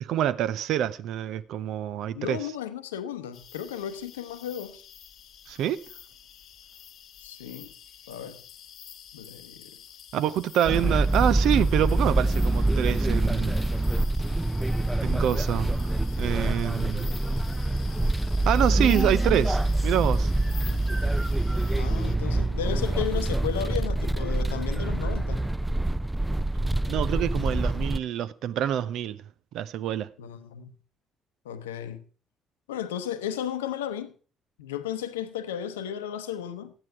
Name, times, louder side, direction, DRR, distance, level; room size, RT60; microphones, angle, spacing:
voice 1, 0.0-2.4 5.5-5.8 10.1-13.6 15.0-15.9 16.2-17.1 18.5-20.3 26.8-29.2 29.5-30.1, right 11 dB, 65° right, 0.6 m, -26 dB
voice 2, 2.1-4.8 7.2-7.7 8.1-8.4 9.1-9.7 20.7-20.8 21.7-25.5 30.2-30.7 31.4-32.0 32.7-34.1 34.6-36.7, left 9 dB, 85° left, 0.8 m, -34 dB
sound 1, 3.3-22.2, left 9 dB, 60° left, 0.9 m, -48 dB
sound 2, 10.6-28.0, right 2 dB, 10° right, 0.5 m, -25 dB
13.0 x 9.8 x 4.7 m
hypercardioid pair, 50°, 0 cm